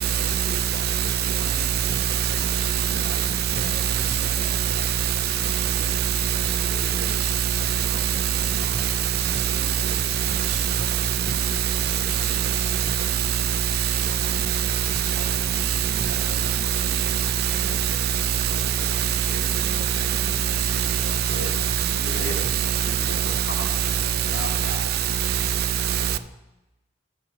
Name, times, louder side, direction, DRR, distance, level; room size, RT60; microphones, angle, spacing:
voice 1, 0.0-1.7 2.1-5.9 6.6-11.4 11.9-13.3 14.0-14.6 14.8-21.4 21.8-23.2, right 3 dB, 70° right, 0.8 m, -42 dB
voice 2, 0.9-1.5 2.7-3.1 3.9-4.1 4.4-4.5 5.6-6.6 7.0-7.4 8.2-8.3 8.6-8.7 9.8-10.0 10.3-10.4 11.3-11.8 12.2-12.7 13.1-13.2 14.6-14.7 15.1-15.6 16.0-16.5 17.2-17.3 17.6-17.7 18.1-18.5 18.9-19.4 19.7-19.8 20.1-20.2 20.9-21.6 23.2-23.4 24.4-24.7 25.2-25.4 25.9-26.0, right 8 dB, 55° right, 0.3 m, -24 dB
voice 3, 22.0-22.5 23.0-23.8 24.3-24.9 26.1-26.2, left 2 dB, 80° left, 1.5 m, -35 dB
9.1 x 4.1 x 5.2 m
head